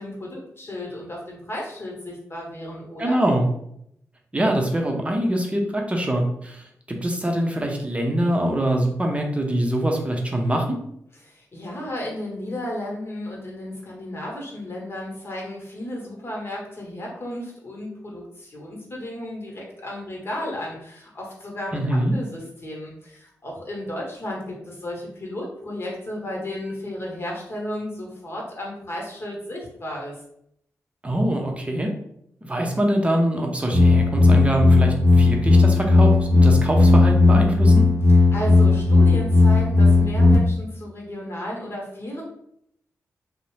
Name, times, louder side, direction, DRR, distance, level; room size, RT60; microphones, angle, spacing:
voice 1, 0.0-3.2 11.2-30.2 38.3-42.2, left 1 dB, 40° left, -2 dB, 1.0 m, -33 dB
voice 2, 3.0-3.5 4.3-10.8 21.7-22.1 31.0-31.9 32.4-37.8, right 1 dB, 20° right, 2 dB, 0.6 m, -24 dB
sound 1, 33.7-40.4, left 3 dB, 60° right, 0.6 m, -15 dB
2.6 x 2.0 x 3.1 m, 0.73 s
cardioid pair, 60°, 6 cm